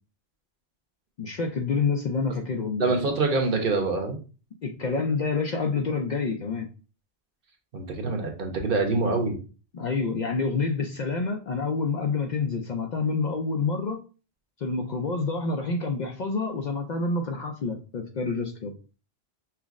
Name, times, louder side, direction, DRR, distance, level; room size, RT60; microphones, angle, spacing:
voice 1, 1.2-2.9 4.6-6.7 9.7-14.0 14.6-18.7, left 4 dB, 55° left, 3 dB, 0.5 m, -28 dB
voice 2, 2.8-4.2 7.7-9.4, right 3 dB, 60° right, 3 dB, 1.0 m, -25 dB
5.7 x 2.0 x 2.4 m, 0.34 s
omnidirectional pair, 1.1 m